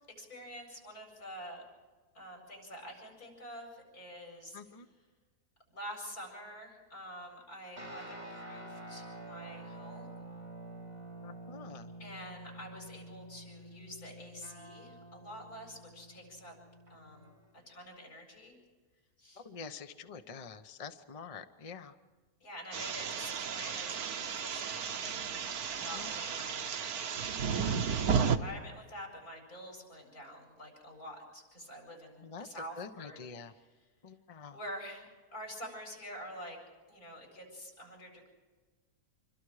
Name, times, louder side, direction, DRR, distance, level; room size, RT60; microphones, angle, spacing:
voice 1, 0.2-1.6 2.1-4.6 5.7-10.1 12.0-16.5 16.9-17.3 17.6-18.6 19.2-19.4 22.4-25.5 25.8-26.7 27.6-33.9 34.5-35.1 35.3-36.6 36.9-38.3, equal, 85° left, 0 dB, 7.9 m, -47 dB
voice 2, 4.5-4.9 11.2-11.9 19.4-21.9 25.8-26.1 32.2-32.5 32.8-33.5 34.0-34.6, left 5 dB, 30° left, 8 dB, 0.8 m, -46 dB
sound 1, 7.8-17.5, right 1 dB, 35° right, 6.4 m, -48 dB
sound 2, 22.7-28.4, right 6 dB, 80° right, 1.5 m, -33 dB
27.0 x 25.0 x 4.9 m, 1.4 s
omnidirectional pair, 1.6 m